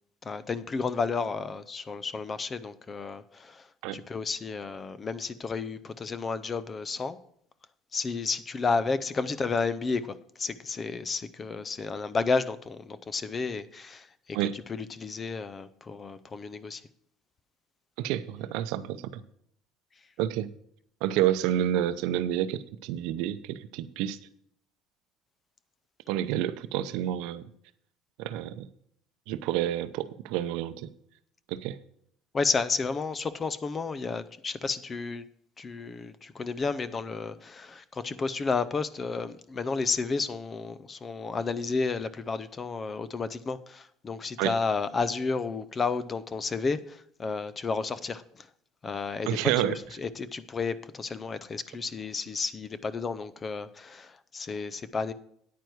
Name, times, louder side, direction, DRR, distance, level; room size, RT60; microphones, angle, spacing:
voice 1, 0.2-7.2 7.9-16.8 32.3-35.3 35.6-48.5 48.8-55.1, left 4 dB, 20° left, 0.4 m, -32 dB
voice 2, 18.0-19.2 20.2-20.5 21.0-24.2 26.1-27.4 28.2-28.7 29.3-30.9 31.5-31.8 44.4-44.5 49.3-49.8, right 12 dB, 75° right, 0.6 m, -29 dB
9.3 x 9.2 x 4.6 m
cardioid pair, 175°, 0 cm